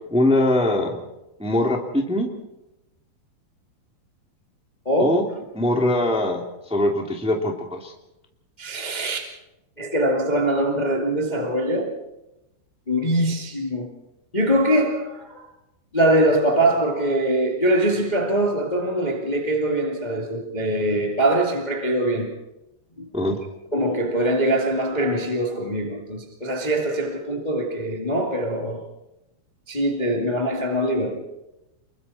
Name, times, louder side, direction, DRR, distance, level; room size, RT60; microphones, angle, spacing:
voice 1, 0.1-0.9 1.4-2.3 5.0-5.2 5.5-6.4 6.7-7.9 23.1-23.4, left 1 dB, 5° right, 0.9 m, -21 dB
voice 2, 4.8-5.2 8.6-9.3 9.8-12.0 12.9-13.9 14.3-15.5 15.9-22.3 23.3-23.4 23.7-28.8 29.7-31.2, right 1 dB, 40° left, 0.6 m, -23 dB
30.0 x 22.5 x 4.3 m
omnidirectional pair, 5.5 m